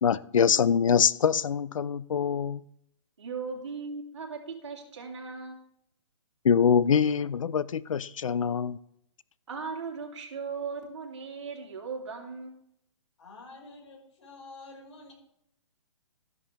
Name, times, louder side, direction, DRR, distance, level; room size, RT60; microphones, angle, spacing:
voice 1, 0.0-2.6 6.4-8.8, left 7 dB, 85° left, 0.6 m, -24 dB
voice 2, 3.2-5.6 9.5-12.6, right 5 dB, 65° right, 3.2 m, -38 dB
voice 3, 13.2-15.1, left 3 dB, 65° left, 5.4 m, -48 dB
13.5 x 10.5 x 3.5 m
hypercardioid pair, 180°, 16 cm